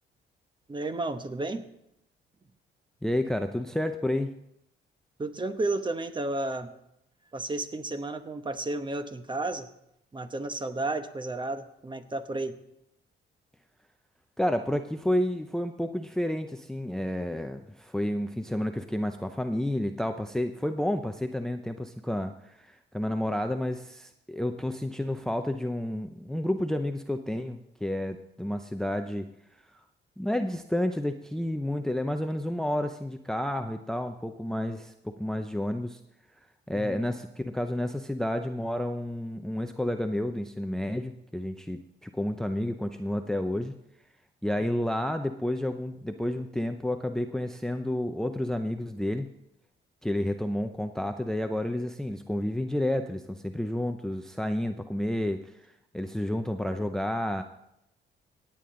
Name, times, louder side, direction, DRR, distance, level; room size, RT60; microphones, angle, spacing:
voice 1, 0.7-1.7 5.2-6.7 7.3-9.7 10.1-12.6 36.7-37.0 44.6-44.9, right 2 dB, 25° right, 9 dB, 1.0 m, -32 dB
voice 2, 3.0-4.4 14.4-29.3 30.2-36.0 36.7-43.7 44.4-49.3 50.0-55.5 55.9-57.4, left 1 dB, 5° left, 7 dB, 0.6 m, -30 dB
17.0 x 8.7 x 3.8 m, 0.81 s
cardioid pair, 90°, 20 cm